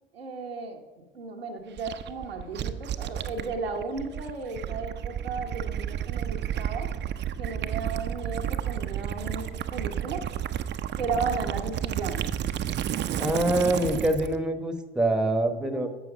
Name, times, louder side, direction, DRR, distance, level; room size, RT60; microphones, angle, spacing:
voice 1, 0.1-6.9 7.4-10.3 11.0-12.3 15.6-15.9, right 4 dB, 80° right, 2 dB, 1.1 m, -35 dB
Gurgling / Liquid, 1.8-14.4, right 10 dB, 35° right, 0.7 m, -31 dB
voice 2, 13.2-15.9, right 1 dB, 5° right, 8 dB, 1.2 m, -25 dB
11.0 x 7.8 x 5.3 m, 1.3 s
figure-of-eight pair, 60°, 29 cm